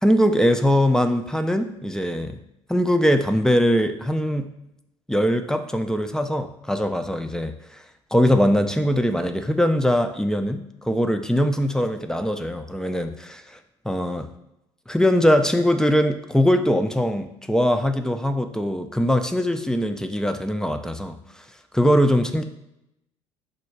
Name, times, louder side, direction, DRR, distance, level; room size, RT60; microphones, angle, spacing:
voice 1, 0.0-2.4 2.7-4.5 5.1-7.8 8.1-13.1 13.8-14.3 14.9-21.2 21.7-22.4, equal, 5° left, 7 dB, 0.4 m, -21 dB
5.1 x 2.3 x 4.5 m, 0.86 s
hypercardioid pair, 65°, 16 cm